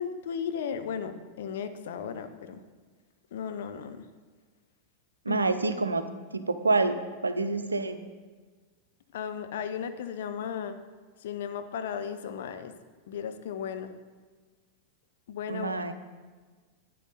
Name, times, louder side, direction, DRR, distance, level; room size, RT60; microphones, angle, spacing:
voice 1, 0.0-2.6 3.3-4.1 5.3-5.4 9.1-10.8 11.2-12.7 13.1-13.9 15.3-15.8, left 7 dB, 55° left, 8 dB, 0.8 m, -35 dB
voice 2, 5.3-6.0 6.3-7.0 7.2-8.0 15.5-15.9, right 3 dB, 80° right, 10 dB, 0.6 m, -27 dB
11.5 x 9.4 x 4.2 m, 1.4 s
figure-of-eight pair, 90°, 0 cm